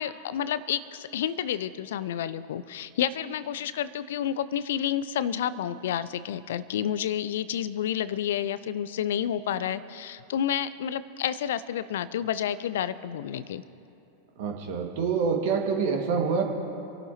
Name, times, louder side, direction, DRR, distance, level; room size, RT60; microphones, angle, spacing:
voice 1, 0.0-13.6, left 10 dB, 60° left, 16 dB, 0.4 m, -30 dB
voice 2, 14.4-16.4, right 5 dB, 50° right, 2 dB, 1.9 m, -26 dB
26.5 x 11.5 x 3.0 m, 2.7 s
figure-of-eight pair, 90°, 0 cm